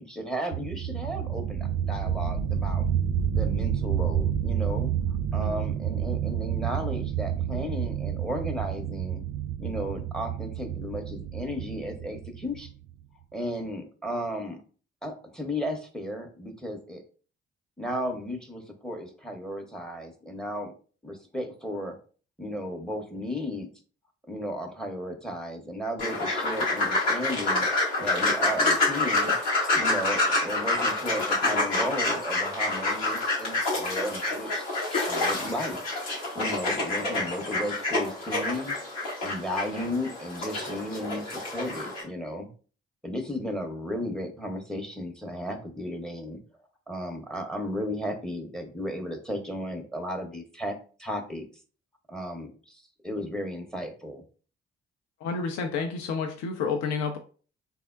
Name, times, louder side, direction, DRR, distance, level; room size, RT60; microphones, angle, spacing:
voice 1, 0.0-2.8 3.3-4.9 5.3-9.2 9.6-12.7 13.3-14.6 15.0-17.0 17.8-20.7 21.0-22.0 22.4-23.7 24.3-27.6 28.0-29.4 29.7-35.8 36.3-38.8 39.2-42.5 43.0-46.4 46.9-51.4 52.1-54.2, equal, ahead, 6 dB, 0.6 m, -34 dB
sound 1, 0.5-12.9, right 9 dB, 55° right, 0.4 m, -29 dB
sound 2, 26.0-42.0, left 2 dB, 85° left, 0.9 m, -27 dB
voice 2, 55.2-57.2, left 5 dB, 60° left, 4 dB, 0.5 m, -30 dB
3.3 x 2.0 x 2.3 m, 0.39 s
hypercardioid pair, 40°, 31 cm